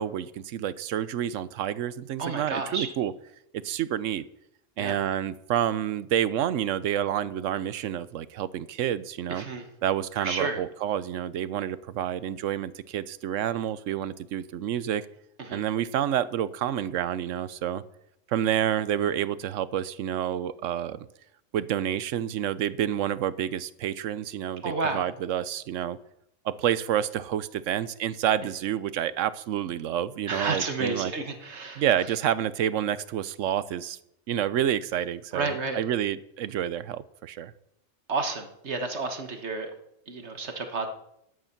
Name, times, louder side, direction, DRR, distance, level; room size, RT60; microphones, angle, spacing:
voice 1, 0.0-3.1 3.5-4.2 4.8-9.5 9.8-15.1 15.5-17.8 18.3-21.1 21.5-26.0 26.4-31.1 31.8-34.0 34.3-37.5, right 10 dB, 85° right, 17 dB, 1.0 m, -29 dB
voice 2, 2.2-2.9 4.8-5.0 9.3-9.7 10.2-10.6 15.4-15.7 24.6-25.0 30.3-31.8 35.3-35.8 38.1-39.7 40.1-40.9, right 3 dB, 65° right, 6 dB, 1.6 m, -31 dB
12.5 x 9.8 x 5.8 m, 0.79 s
omnidirectional pair, 1.3 m